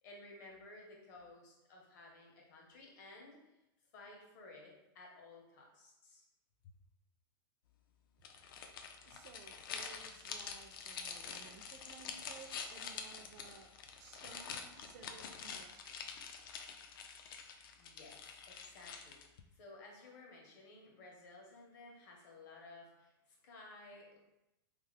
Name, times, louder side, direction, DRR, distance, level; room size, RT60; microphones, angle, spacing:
voice 1, 0.0-3.5 3.9-6.2 17.8-24.2, left 2 dB, 50° left, -1 dB, 0.9 m, -56 dB
sound 1, 8.2-19.4, left 6 dB, 65° left, 0.4 m, -47 dB
voice 2, 9.0-13.7 14.0-16.1, right 6 dB, 45° right, 5 dB, 0.4 m, -57 dB
3.2 x 2.0 x 3.4 m, 0.91 s
supercardioid pair, 160°, 12 cm